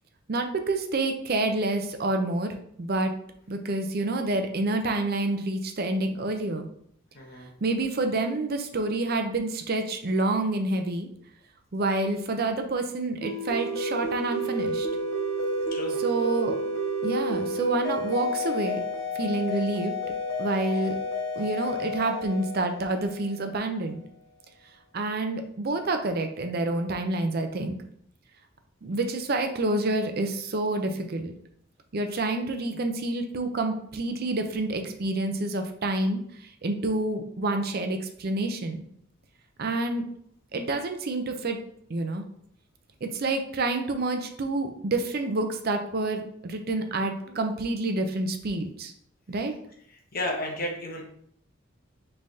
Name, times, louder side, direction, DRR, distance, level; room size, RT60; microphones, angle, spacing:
voice 1, 0.3-2.5 2.8-3.1 3.5-6.7 7.6-11.1 11.7-14.9 16.0-16.6 17.0-18.8 19.1-19.9 20.4-21.0 21.3-24.0 24.9-27.8 28.8-31.3 31.9-38.8 39.6-40.0 40.5-41.6 41.9-42.2 43.0-48.9 49.3-49.5, right 2 dB, 50° right, 5 dB, 0.6 m, -28 dB
voice 2, 7.1-7.5 15.7-16.0 49.9-51.0, left 1 dB, 45° left, 0 dB, 1.0 m, -33 dB
sound 1, 13.2-23.6, equal, 85° left, 1.2 m, -30 dB
5.4 x 3.3 x 2.7 m, 0.67 s
head